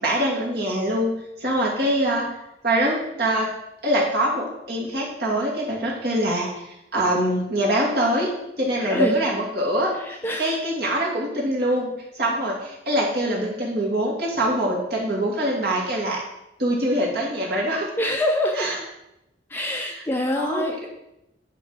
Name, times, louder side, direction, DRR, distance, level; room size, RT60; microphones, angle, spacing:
voice 1, 0.0-1.1 1.4-2.3 2.6-3.5 3.8-8.3 8.6-9.9 10.4-16.2 16.6-17.9 18.6-18.7 19.8-19.9 20.4-20.9, right 1 dB, 60° right, -3 dB, 2.4 m, -24 dB
voice 2, 8.8-9.2 10.0-10.6 18.0-18.7 19.5-20.9, left 1 dB, 10° left, 2 dB, 0.6 m, -25 dB
9.9 x 4.6 x 5.0 m, 0.86 s
head